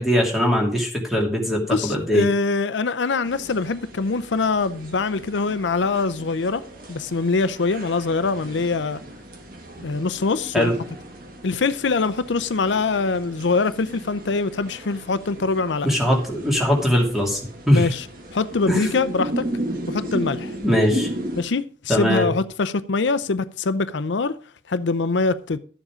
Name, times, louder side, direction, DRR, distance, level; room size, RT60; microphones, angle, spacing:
voice 1, 0.0-2.3 10.5-10.7 15.8-17.4 17.7-17.9 18.7-19.0 20.6-21.1 21.9-22.3, equal, ahead, 2.7 m, -20 dB
voice 2, 1.7-6.6 6.9-9.0 9.8-10.7 11.4-15.9 17.7-18.1 18.3-19.4 19.9-20.6 21.4-24.4 24.7-25.6, left 4 dB, 85° left, 0.6 m, -23 dB
sound 1, 3.2-21.4, right 1 dB, 50° right, 2.0 m, -35 dB
12.0 x 7.3 x 5.0 m
head